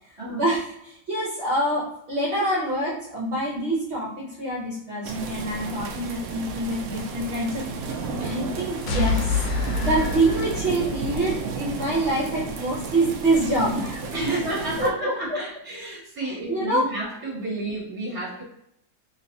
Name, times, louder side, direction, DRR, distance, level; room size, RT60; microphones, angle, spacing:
voice 1, 0.3-9.4 9.8-14.0 14.3-14.5 14.8-15.4 16.2-16.9, right 1 dB, 50° right, -5 dB, 0.9 m, -26 dB
sound 1, 5.0-14.9, right 4 dB, 90° right, 0.7 m, -33 dB
sound 2, 8.9-11.4, left 3 dB, 80° left, 1.4 m, -27 dB
voice 2, 14.1-18.4, right 2 dB, 10° right, -7 dB, 1.3 m, -31 dB
3.1 x 3.0 x 2.7 m, 0.77 s
omnidirectional pair, 2.1 m